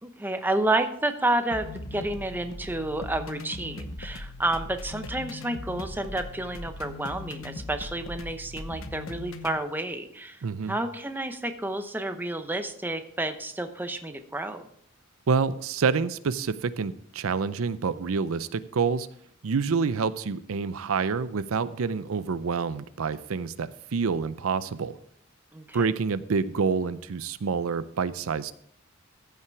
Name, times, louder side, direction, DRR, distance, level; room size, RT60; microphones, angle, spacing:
voice 1, 0.0-14.7 25.5-25.9, right 2 dB, 10° right, 7 dB, 0.8 m, -30 dB
sound 1, 1.5-9.6, left 2 dB, 70° left, 0.9 m, -39 dB
voice 2, 10.4-10.8 15.3-19.1 19.4-25.0 25.7-28.5, right 5 dB, 85° right, 15 dB, 0.5 m, -27 dB
14.5 x 5.8 x 4.6 m, 0.65 s
head